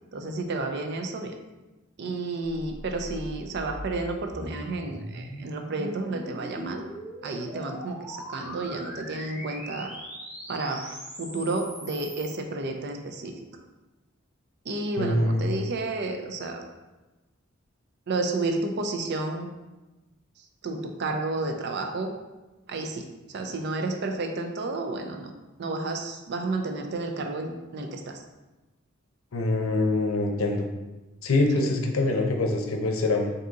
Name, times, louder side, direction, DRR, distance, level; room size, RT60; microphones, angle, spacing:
voice 1, 0.1-1.3 2.0-6.8 7.2-9.9 10.5-13.4 14.6-16.6 18.1-19.5 20.4-22.1 22.7-25.3 25.6-28.2 31.5-31.7, right 2 dB, 55° right, 4 dB, 0.5 m, -31 dB
sound 1, 2.4-12.4, equal, 5° right, 0.9 m, -41 dB
voice 2, 15.0-15.4 29.3-30.7 31.2-33.3, left 2 dB, 85° left, 3 dB, 0.6 m, -24 dB
3.9 x 2.7 x 3.6 m, 1.1 s
head